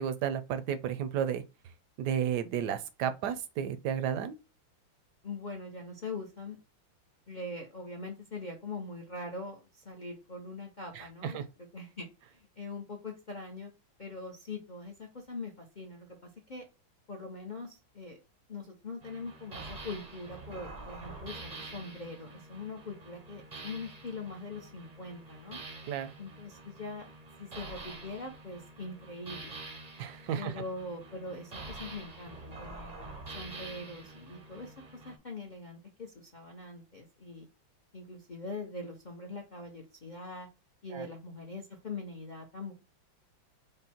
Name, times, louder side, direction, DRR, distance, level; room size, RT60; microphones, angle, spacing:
voice 1, 0.0-1.4 2.0-4.4 10.9-11.4 25.9-26.1 30.0-30.5 40.9-41.1, right 9 dB, 75° right, 1.0 m, -32 dB
voice 2, 5.2-6.6 7.3-11.4 11.7-13.7 14.0-16.2 16.5-16.6 17.1-18.2 18.5-25.6 26.2-27.0 27.4-29.6 30.4-33.1 33.3-37.5 37.9-40.5 40.8-42.7, left 3 dB, 75° left, 0.4 m, -42 dB
sound 1, 19.0-35.2, right 3 dB, 50° right, 0.4 m, -47 dB
5.2 x 2.1 x 4.2 m
omnidirectional pair, 2.1 m